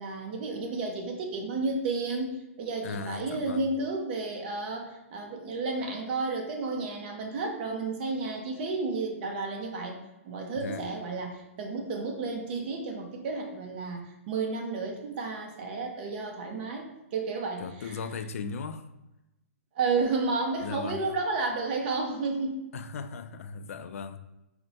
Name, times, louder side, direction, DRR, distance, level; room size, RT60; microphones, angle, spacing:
voice 1, 0.0-10.0 10.2-18.0 19.7-22.6, right 3 dB, 40° right, 0.7 m, -32 dB
voice 2, 2.8-3.7 10.6-10.9 17.6-18.9 20.6-21.1 22.7-24.2, left 5 dB, 70° left, 0.3 m, -37 dB
4.2 x 2.1 x 4.1 m
hypercardioid pair, 150°, 8 cm